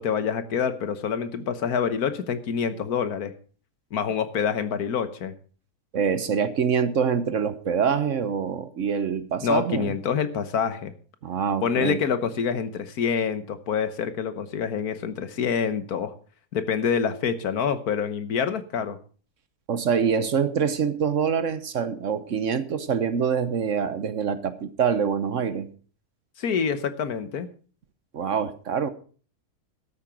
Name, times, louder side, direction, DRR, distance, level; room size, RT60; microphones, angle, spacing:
voice 1, 0.0-3.3 3.9-5.3 9.4-10.9 11.6-16.1 16.5-19.0 26.4-27.5, left 7 dB, 70° left, 12 dB, 1.6 m, -26 dB
voice 2, 5.9-9.9 11.2-12.0 19.7-25.7 28.1-28.9, right 7 dB, 55° right, 13 dB, 1.2 m, -25 dB
12.5 x 8.9 x 6.0 m, 0.41 s
omnidirectional pair, 1.7 m